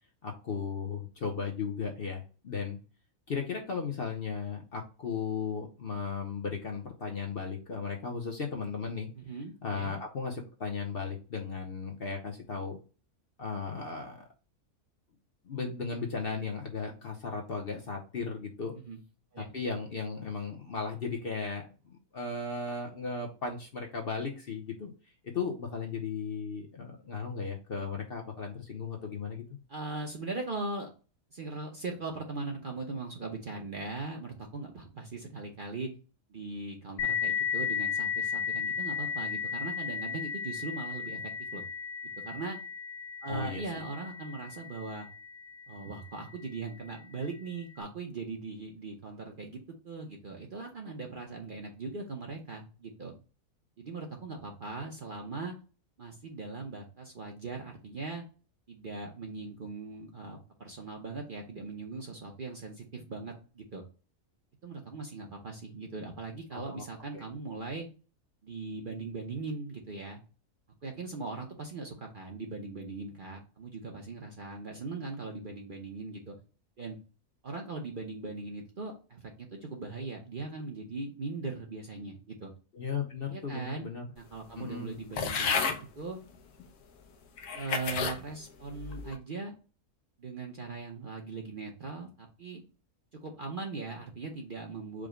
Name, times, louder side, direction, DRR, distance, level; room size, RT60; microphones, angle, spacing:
voice 1, 0.2-2.8 3.3-9.1 9.6-12.8 13.4-14.2 15.4-18.7 19.4-24.9 25.2-29.4 43.3-43.8 66.5-66.8 67.1-67.2 82.7-84.0 84.6-85.0, left 5 dB, 50° left, 1 dB, 0.8 m, -36 dB
voice 2, 9.1-9.9 18.8-19.0 19.3-19.5 29.7-30.9 31.3-35.9 36.3-41.2 41.5-41.6 42.2-42.6 43.2-45.1 45.7-53.1 53.8-55.5 56.0-58.2 58.7-63.8 64.6-67.9 68.4-70.2 70.8-76.4 76.8-77.0 77.4-82.5 83.3-83.9 84.2-86.2 87.5-89.5 90.2-92.6 93.2-95.1, right 3 dB, 45° right, 1 dB, 0.8 m, -40 dB
sound 1, 37.0-46.2, left 7 dB, 70° left, 1.1 m, -35 dB
sound 2, 85.2-85.8 86.6-86.7 87.4-88.2 88.8-89.2, left 5 dB, 85° left, 1.3 m, -31 dB
5.0 x 2.2 x 4.9 m, 0.34 s
omnidirectional pair, 1.5 m